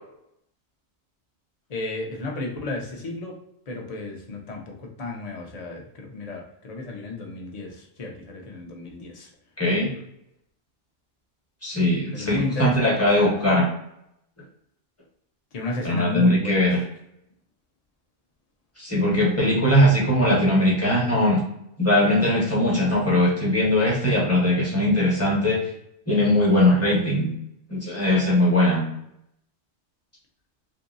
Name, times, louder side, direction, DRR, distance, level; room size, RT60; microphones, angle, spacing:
voice 1, 1.7-3.4 3.7-9.3 12.1-13.4 15.5-16.8, left 2 dB, 45° left, 0 dB, 0.6 m, -33 dB
voice 2, 9.6-9.9 11.6-13.7 15.8-16.8 18.8-21.4 21.8-25.6 26.1-27.3 27.7-28.9, left 1 dB, 15° left, -4 dB, 0.9 m, -20 dB
2.8 x 2.6 x 2.5 m, 0.77 s
omnidirectional pair, 1.2 m